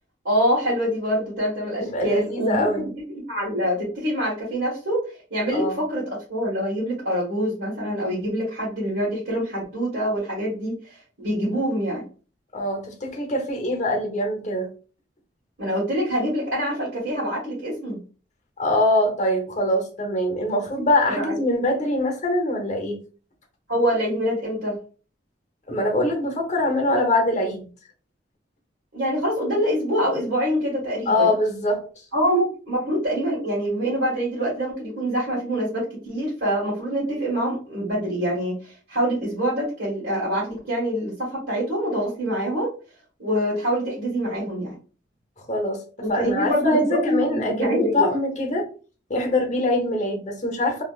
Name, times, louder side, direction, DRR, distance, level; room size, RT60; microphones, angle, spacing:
voice 1, 0.2-2.6 3.1-5.0 5.3-6.0 6.3-12.0 15.6-18.0 21.1-21.4 23.7-24.7 28.9-31.3 32.1-42.7 43.2-44.7 46.0-48.1, equal, 75° right, -8 dB, 1.7 m, -25 dB
voice 2, 1.8-2.9 5.5-5.8 12.5-14.7 18.6-23.0 25.7-27.7 31.1-31.8 45.4-45.8 46.1-48.7 49.1-50.8, left 1 dB, 40° left, 3 dB, 0.9 m, -23 dB
3.2 x 2.8 x 2.4 m, 0.38 s
head